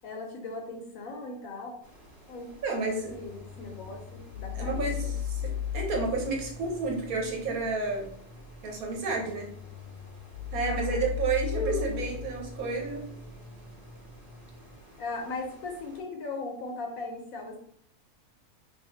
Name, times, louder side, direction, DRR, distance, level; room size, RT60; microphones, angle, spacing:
voice 1, 0.0-1.7 2.3-5.1 10.6-11.1 15.0-17.6, left 3 dB, 70° left, 2 dB, 0.9 m, -38 dB
sound 1, 1.8-16.0, equal, 15° right, 1.0 m, -45 dB
voice 2, 2.6-3.1 4.6-5.4 5.7-8.1 8.6-9.5 10.5-13.0, right 4 dB, 65° right, 1 dB, 1.1 m, -31 dB
sound 2, 2.8-14.8, left 9 dB, 85° left, 1.2 m, -38 dB
3.2 x 2.7 x 2.8 m, 0.65 s
omnidirectional pair, 1.7 m